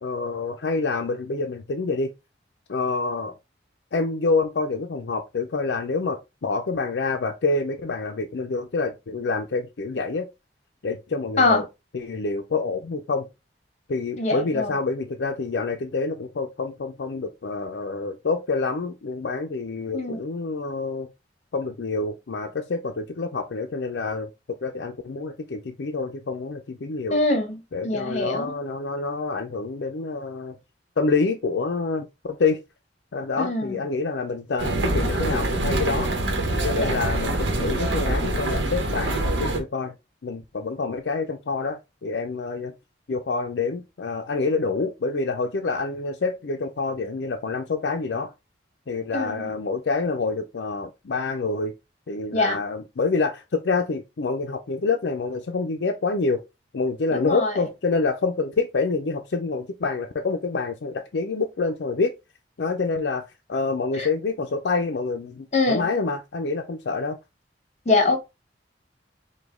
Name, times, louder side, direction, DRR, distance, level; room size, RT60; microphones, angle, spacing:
voice 1, 0.0-2.1 2.7-3.3 3.9-10.3 10.8-11.7 11.9-13.3 13.9-21.1 21.5-24.3 24.6-27.2 27.7-30.6 31.0-32.6 33.1-36.1 36.6-39.9 40.2-42.7 43.1-48.3 48.9-51.7 52.1-56.4 56.7-62.1 62.6-63.2 63.5-67.2, left 3 dB, 70° left, 0.5 m, -27 dB
voice 2, 14.2-14.7 19.9-20.2 27.1-27.6 27.8-28.5 33.4-33.7 36.8-37.0 49.1-49.4 52.3-52.6 57.1-57.5 64.0-64.1 65.5-65.9 67.9-68.2, left 3 dB, 40° left, 1.1 m, -23 dB
sound 1, 34.6-39.6, right 1 dB, 90° right, 1.0 m, -25 dB
4.9 x 2.2 x 3.6 m
head